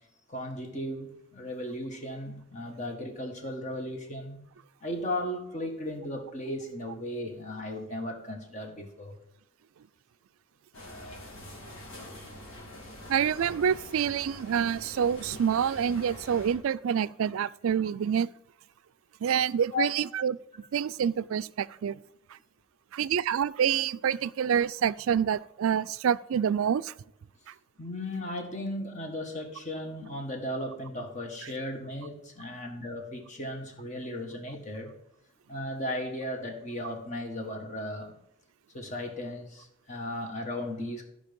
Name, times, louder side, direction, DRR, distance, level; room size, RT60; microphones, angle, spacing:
voice 1, 0.3-4.4 4.8-9.2 19.7-19.9 27.8-34.9 35.5-38.1 38.7-41.0, left 1 dB, 35° left, 1.6 m, -36 dB
sound 1, 10.7-16.5, left 1 dB, 80° left, 3.0 m, -45 dB
voice 2, 13.1-18.3 19.2-20.4 20.7-22.0 22.9-26.9, right 8 dB, 75° right, 0.3 m, -27 dB
13.0 x 5.4 x 5.3 m
head